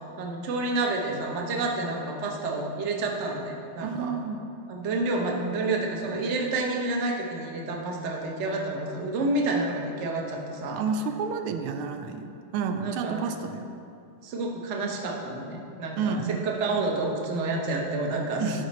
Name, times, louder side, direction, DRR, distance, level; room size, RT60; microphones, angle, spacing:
voice 1, 0.2-4.1 4.7-10.8 12.8-13.2 14.2-18.7, right 2 dB, 45° right, 0 dB, 1.0 m, -29 dB
voice 2, 3.8-4.4 10.7-13.7 16.0-16.5 18.4-18.6, right 5 dB, 85° right, 6 dB, 1.5 m, -30 dB
12.0 x 5.0 x 4.2 m, 2.5 s
omnidirectional pair, 2.3 m